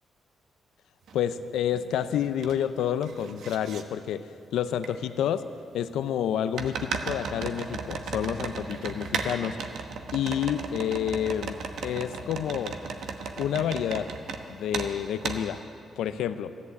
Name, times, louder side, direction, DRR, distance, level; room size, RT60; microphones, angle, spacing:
voice 1, 1.1-4.3 4.5-5.4 5.7-9.6 10.1-11.6 11.8-12.8 13.4-14.1 14.5-15.6 16.0-16.5, left 9 dB, 85° left, 12 dB, 0.5 m, -29 dB
sound 1, 1.1-1.2 1.7-2.5 2.8-3.8 4.8-4.9 6.6-14.4 14.7-14.9 15.2-15.4, right 5 dB, 80° right, 1.1 m, -35 dB
14.0 x 11.0 x 8.0 m, 2.4 s
cardioid pair, 80°, 0 cm